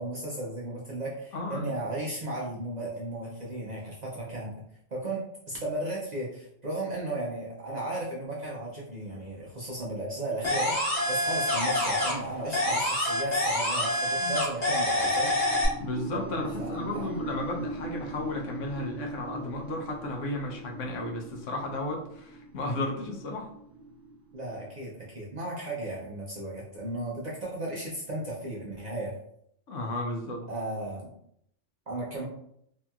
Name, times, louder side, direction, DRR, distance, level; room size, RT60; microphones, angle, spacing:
voice 1, 0.0-4.5 4.9-15.3 16.6-16.7 16.9-17.1 24.3-29.1 30.5-31.1 31.9-32.2, right 1 dB, 50° right, -4 dB, 0.5 m, -35 dB
voice 2, 1.3-1.7 14.2-14.3 15.8-23.5 29.7-30.5, left 1 dB, 85° left, 0 dB, 1.0 m, -34 dB
sound 1, 10.4-12.3 12.5-15.7, left 1 dB, 35° left, 1.1 m, -26 dB
sound 2, 15.0-25.0, right 2 dB, 70° right, 0.8 m, -41 dB
2.8 x 2.7 x 2.3 m, 0.72 s
omnidirectional pair, 1.3 m